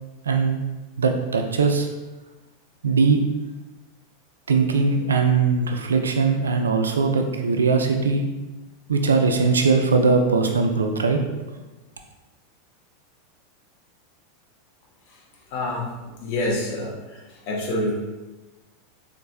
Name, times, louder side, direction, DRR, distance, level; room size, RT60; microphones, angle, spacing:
voice 1, 0.2-0.6 1.0-1.9 2.8-3.2 4.5-8.3 8.9-11.2, right 4 dB, 75° right, 4 dB, 0.3 m, -20 dB
voice 2, 15.5-17.9, left 1 dB, 50° left, -2 dB, 0.8 m, -28 dB
4.0 x 2.5 x 2.2 m, 1.1 s
figure-of-eight pair, 85°, 0 cm